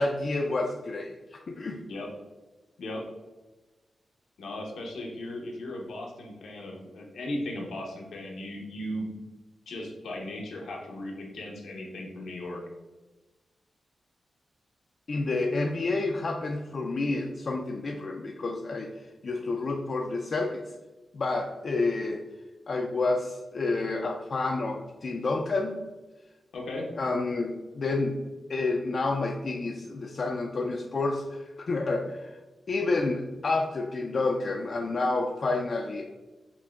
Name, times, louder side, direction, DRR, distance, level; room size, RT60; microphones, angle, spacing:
voice 1, 0.0-1.8 15.1-20.6 21.1-22.2 22.7-25.8 27.0-28.2 28.5-32.4 32.7-36.0, left 3 dB, 60° left, 1 dB, 0.3 m, -29 dB
voice 2, 4.4-9.1 9.7-12.6 26.5-26.9, left 1 dB, 85° left, 0 dB, 0.7 m, -37 dB
5.9 x 2.1 x 2.3 m, 1.2 s
cardioid pair, 50°, 0 cm